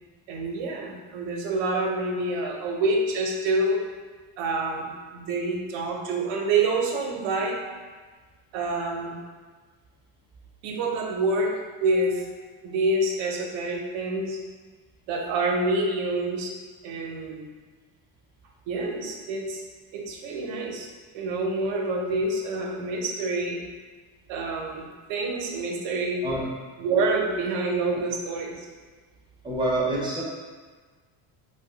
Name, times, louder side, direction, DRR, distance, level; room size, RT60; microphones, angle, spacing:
voice 1, 0.3-3.8 4.4-7.6 8.5-9.2 10.6-12.3 12.6-14.4 15.1-16.5 16.8-17.5 18.7-19.6 19.9-20.9 21.1-23.6 24.3-26.2 26.8-28.7, right 2 dB, 70° right, 0 dB, 0.8 m, -27 dB
voice 2, 29.4-30.2, right 2 dB, 10° right, -5 dB, 0.6 m, -26 dB
2.8 x 2.3 x 3.8 m, 1.4 s
cardioid pair, 135°, 47 cm